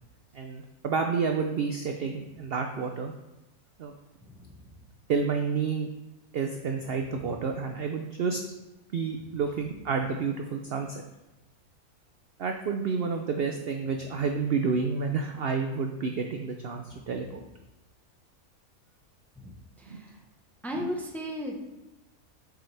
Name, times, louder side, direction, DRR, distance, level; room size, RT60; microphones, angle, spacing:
voice 1, 0.3-3.1 3.8-3.9 5.1-5.9 6.3-8.4 8.9-11.0 12.4-17.4 19.9-20.0, right 5 dB, 65° right, 4 dB, 0.6 m, -30 dB
voice 2, 19.4-20.0 20.6-21.7, equal, ahead, 0 dB, 0.7 m, -35 dB
7.7 x 7.0 x 3.3 m, 1.0 s
omnidirectional pair, 1.6 m